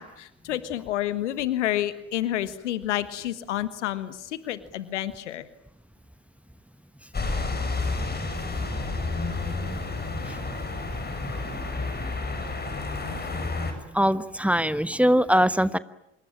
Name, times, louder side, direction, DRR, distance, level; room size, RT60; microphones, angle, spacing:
voice 1, 0.0-5.5, left 13 dB, 80° left, 14 dB, 1.5 m, -29 dB
sound 1, 7.1-13.7, left 3 dB, 25° left, 7.0 m, -30 dB
voice 2, 11.2-11.7 13.9-15.8, equal, 5° right, 14 dB, 1.2 m, -23 dB
26.5 x 23.0 x 8.9 m, 0.80 s
hypercardioid pair, 55°, 35 cm